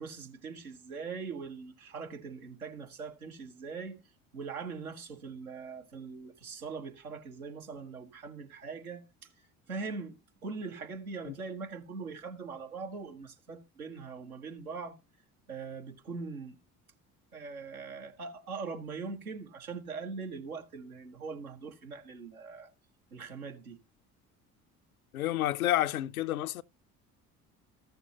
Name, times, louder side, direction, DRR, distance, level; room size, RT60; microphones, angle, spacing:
voice 1, 0.0-4.0 4.3-9.0 9.4-10.2 10.4-15.0 15.5-16.6 17.3-22.7 23.1-23.8, right 4 dB, 80° right, 1.4 m, -41 dB
voice 2, 25.1-26.6, left 14 dB, 80° left, 0.5 m, -29 dB
14.5 x 6.7 x 2.8 m
figure-of-eight pair, 60°, 43 cm